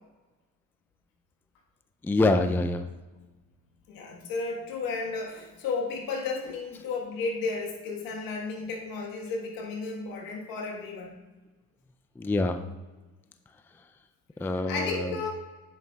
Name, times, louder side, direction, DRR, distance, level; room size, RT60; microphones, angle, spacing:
voice 1, 2.0-2.8 12.2-12.6 14.4-15.2, left 2 dB, 5° left, 8 dB, 0.4 m, -25 dB
voice 2, 3.9-11.1 14.7-15.3, left 4 dB, 80° left, 0 dB, 1.5 m, -33 dB
8.6 x 6.4 x 2.3 m, 1.2 s
supercardioid pair, 80°, 34 cm